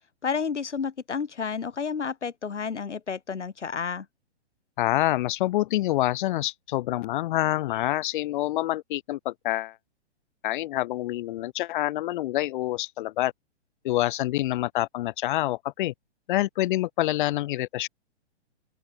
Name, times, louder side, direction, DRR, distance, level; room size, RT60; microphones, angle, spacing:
voice 1, 0.2-4.1, left 6 dB, 85° left, 1.3 m, -31 dB
voice 2, 4.8-9.8 10.4-13.3 13.8-15.9 16.3-17.9, left 16 dB, 45° left, 2.0 m, -27 dB
open air
figure-of-eight pair, 125°, 35 cm